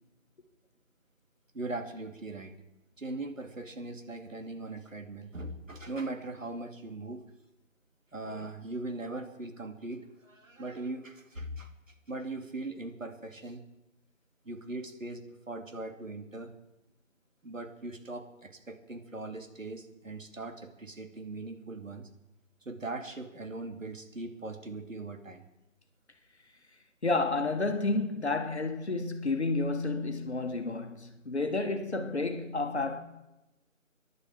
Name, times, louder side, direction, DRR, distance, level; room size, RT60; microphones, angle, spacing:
voice 1, 1.5-2.6 3.0-7.2 8.1-13.6 14.4-16.5 17.4-22.1 22.6-25.4, right 2 dB, 70° right, 2.5 m, -40 dB
voice 2, 27.0-33.0, left 3 dB, 55° left, 1.8 m, -30 dB
22.5 x 11.0 x 4.7 m
figure-of-eight pair, 165°, 40 cm